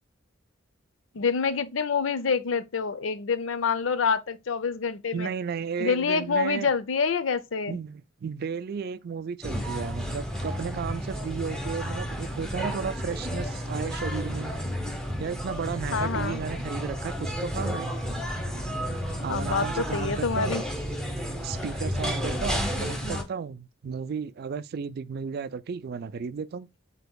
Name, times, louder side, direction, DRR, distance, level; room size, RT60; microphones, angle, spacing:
voice 1, 1.1-5.3 5.8-7.8 15.9-16.4 19.3-20.6, left 5 dB, 85° left, 0.6 m, -27 dB
voice 2, 5.1-6.7 7.7-14.5 15.2-17.9 19.2-20.6 21.4-26.7, right 6 dB, 55° right, 0.3 m, -34 dB
sound 1, 9.4-23.2, equal, 5° left, 0.9 m, -31 dB
7.9 x 2.9 x 2.2 m
head